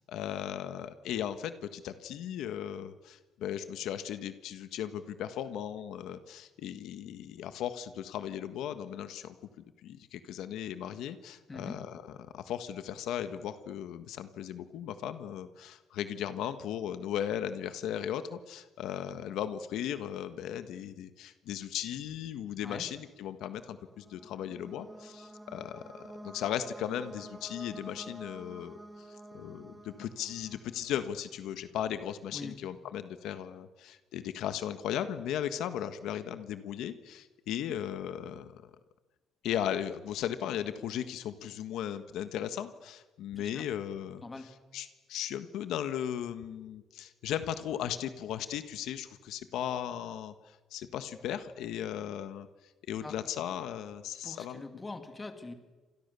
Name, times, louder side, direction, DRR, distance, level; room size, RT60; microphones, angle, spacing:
voice 1, 0.1-9.3 9.8-38.7 39.4-44.2 44.7-54.6, left 10 dB, 75° left, 10 dB, 1.5 m, -37 dB
sound 1, 23.6-31.4, right 1 dB, 10° right, 1.4 m, -50 dB
voice 2, 43.3-43.6 44.2-44.5 53.0-53.3 54.2-55.5, left 3 dB, 15° left, 7 dB, 2.6 m, -43 dB
29.0 x 27.0 x 7.0 m, 1.2 s
cardioid pair, 165°, 0 cm